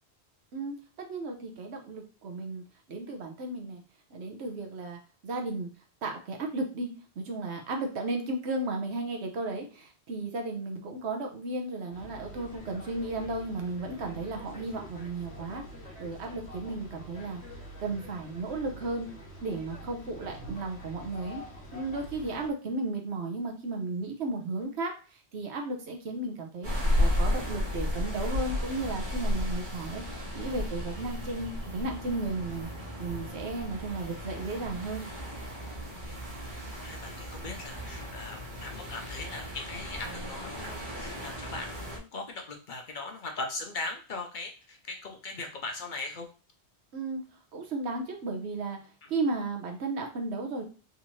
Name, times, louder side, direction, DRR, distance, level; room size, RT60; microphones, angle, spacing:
voice 1, 0.5-3.8 4.1-5.7 6.0-6.9 7.2-15.6 16.0-19.1 19.4-21.4 21.7-32.7 33.0-35.0 46.9-47.2 47.5-48.8 49.1-50.6, right 2 dB, 80° right, 3 dB, 1.1 m, -34 dB
sound 1, 11.9-22.5, equal, 75° left, 1.2 m, -46 dB
sound 2, 26.6-42.0, left 1 dB, 50° right, 1.2 m, -34 dB
voice 2, 36.8-46.3 49.0-49.1, left 3 dB, 55° left, 3 dB, 0.7 m, -39 dB
3.7 x 2.6 x 3.0 m, 0.35 s
omnidirectional pair, 1.1 m